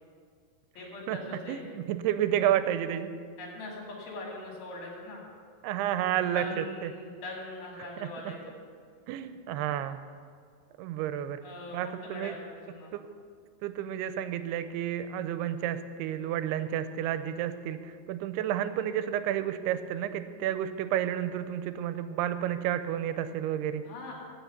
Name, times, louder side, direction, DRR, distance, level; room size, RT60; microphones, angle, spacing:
voice 1, 0.8-1.6 3.4-5.2 6.1-8.6 11.4-12.9 23.8-24.1, left 2 dB, 70° left, -2 dB, 4.1 m, -41 dB
voice 2, 1.5-3.1 5.6-6.9 9.1-10.0 10.8-11.4 11.7-12.4 12.9-13.0 13.6-23.8, right 11 dB, 85° right, 11 dB, 2.5 m, -31 dB
15.0 x 6.1 x 5.8 m, 2.1 s
omnidirectional pair, 4.6 m